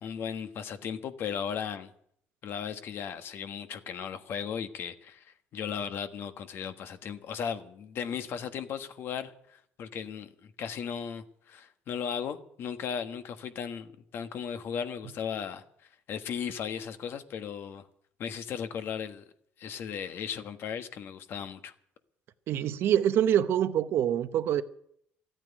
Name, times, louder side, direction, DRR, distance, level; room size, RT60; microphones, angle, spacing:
voice 1, 0.0-1.9 2.4-15.6 16.1-17.8 18.2-19.2 19.6-21.7, left 7 dB, 60° left, 1.3 m, -36 dB
voice 2, 22.5-24.6, right 10 dB, 65° right, 0.9 m, -25 dB
14.0 x 9.0 x 9.9 m
cardioid pair, 120°, 4 cm